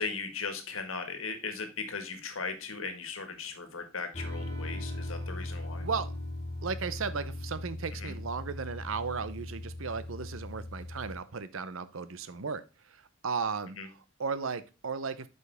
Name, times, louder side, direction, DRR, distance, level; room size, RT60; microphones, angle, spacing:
voice 1, 0.0-5.8 8.0-8.1 13.8-13.9, left 4 dB, 85° left, 7 dB, 1.6 m, -37 dB
sound 1, 4.1-11.2, left 1 dB, 35° left, 2.2 m, -39 dB
voice 2, 5.8-6.1 6.6-15.3, right 5 dB, 75° right, 14 dB, 0.7 m, -35 dB
8.0 x 5.4 x 3.4 m, 0.30 s
head